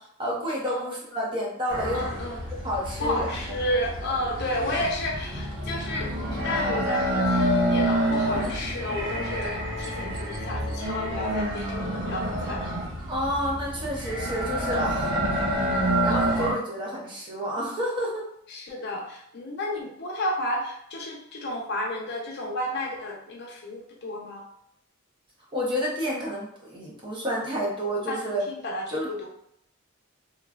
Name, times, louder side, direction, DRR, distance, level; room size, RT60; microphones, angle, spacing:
voice 1, 0.2-2.0 2.6-3.3 13.1-15.2 16.0-18.3 25.5-28.4 28.9-29.3, equal, 25° right, -4 dB, 0.7 m, -30 dB
sound 1, 1.7-16.5, right 1 dB, 90° right, 0.9 m, -28 dB
voice 2, 1.9-2.4 3.0-12.7 18.5-24.5 27.5-27.7 28.1-29.3, left 1 dB, 55° left, -1 dB, 0.6 m, -32 dB
3.0 x 2.3 x 2.3 m, 0.71 s
head